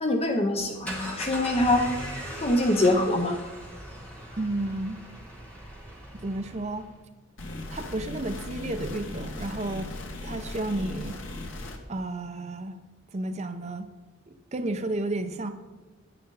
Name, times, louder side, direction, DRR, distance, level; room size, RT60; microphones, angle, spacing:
voice 1, 0.0-1.9 2.4-3.4, left 1 dB, 30° left, 4 dB, 0.7 m, -24 dB
sound 1, 0.6-6.9, equal, 5° left, 2.1 m, -39 dB
voice 2, 4.4-5.0 6.2-6.9 7.7-9.9 10.2-11.2 11.9-12.8 13.1-13.9 14.3-15.5, right 2 dB, 30° right, 8 dB, 0.6 m, -32 dB
sound 2, 7.4-11.8, left 2 dB, 65° left, 1.3 m, -38 dB
10.0 x 9.3 x 4.0 m, 1.3 s
head